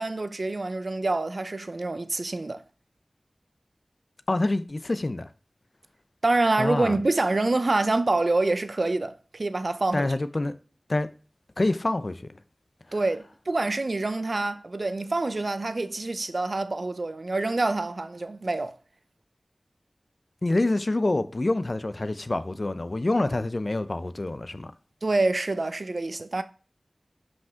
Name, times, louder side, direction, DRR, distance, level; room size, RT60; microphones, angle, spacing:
voice 1, 0.0-2.6 6.2-10.1 12.9-18.8 25.0-26.4, right 2 dB, 60° right, 0.7 m, -26 dB
voice 2, 4.3-5.3 6.6-7.0 9.9-10.5 10.9-11.1 11.6-12.4 20.4-24.7, left 2 dB, 45° left, 0.7 m, -26 dB
11.5 x 5.3 x 3.7 m
wide cardioid pair, 65°, 0 cm